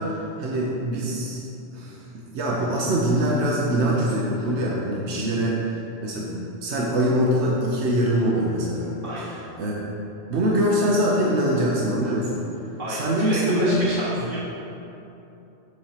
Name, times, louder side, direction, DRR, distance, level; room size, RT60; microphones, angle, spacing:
voice 1, 0.0-1.4 1.7-8.9 9.6-9.9 10.3-12.4 12.9-13.8, right 1 dB, 80° right, -3 dB, 1.2 m, -23 dB
voice 2, 9.0-9.3 12.8-14.4, equal, 50° right, -7 dB, 1.2 m, -30 dB
8.0 x 4.4 x 5.7 m, 2.9 s
omnidirectional pair, 1.1 m